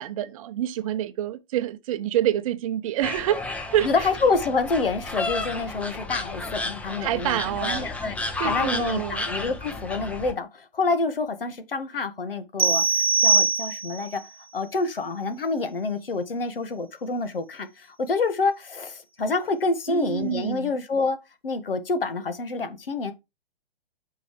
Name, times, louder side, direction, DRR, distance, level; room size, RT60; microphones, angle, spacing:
voice 1, 0.0-4.1 7.0-7.9 8.4-9.2 19.9-20.7, right 12 dB, 35° right, 0.8 m, -27 dB
sound 1, 3.0-10.3, left 2 dB, 5° left, 0.7 m, -32 dB
voice 2, 3.8-14.2 14.5-21.2 21.4-23.1, left 3 dB, 70° left, 1.7 m, -27 dB
sound 2, 12.6-14.2, right 4 dB, 85° right, 1.0 m, -21 dB
9.2 x 5.5 x 3.2 m
figure-of-eight pair, 125°, 29 cm